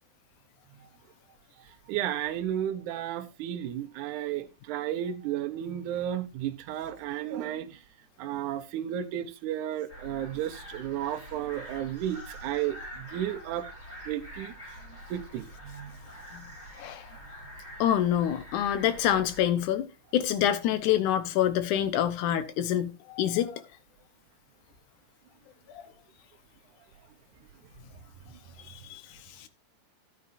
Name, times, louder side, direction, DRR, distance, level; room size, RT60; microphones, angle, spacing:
voice 1, 1.6-7.8 8.2-13.7 14.0-16.0 28.3-28.4, right 11 dB, 75° right, 2.1 m, -33 dB
sound 1, 9.9-19.4, equal, 20° left, 5.9 m, -46 dB
voice 2, 17.8-19.9 20.1-23.6 25.7-25.8 28.9-29.0 29.4-29.5, left 11 dB, 75° left, 2.4 m, -26 dB
13.0 x 9.6 x 2.6 m
omnidirectional pair, 3.7 m